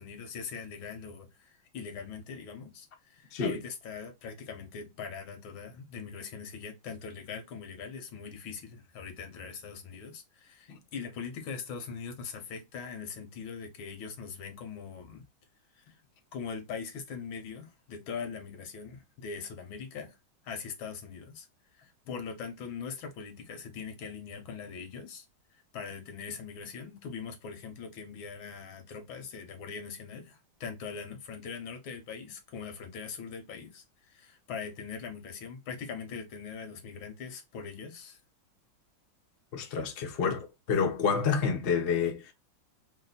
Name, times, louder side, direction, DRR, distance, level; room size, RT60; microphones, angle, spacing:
voice 1, 0.0-15.2 15.8-16.0 16.3-20.2 20.4-21.5 21.8-25.3 25.5-38.2, left 6 dB, 85° left, 1.7 m, -41 dB
voice 2, 39.5-40.4 40.7-42.3, left 6 dB, 55° left, 0.6 m, -28 dB
3.8 x 2.2 x 3.9 m
omnidirectional pair, 2.2 m